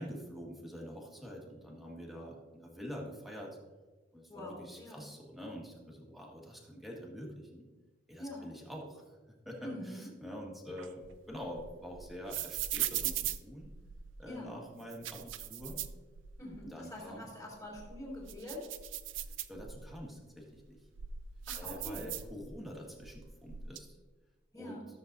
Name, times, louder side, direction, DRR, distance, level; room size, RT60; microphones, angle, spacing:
voice 1, 0.0-3.6 4.1-7.7 8.1-9.2 9.4-13.7 14.2-15.8 16.6-17.2 19.5-20.8 21.6-23.9 24.6-24.8, equal, ahead, -2 dB, 1.6 m, -46 dB
voice 2, 4.3-5.0 8.2-8.5 9.6-10.1 14.2-14.6 16.4-18.7 21.5-22.1 24.5-24.9, left 1 dB, 20° left, -5 dB, 3.1 m, -45 dB
sound 1, 10.8-14.2 14.8-16.6 17.0-17.1 17.6-20.0 20.5-22.7 23.0-23.8, right 11 dB, 80° right, 0.5 m, -40 dB
13.5 x 7.2 x 2.6 m, 1.3 s
head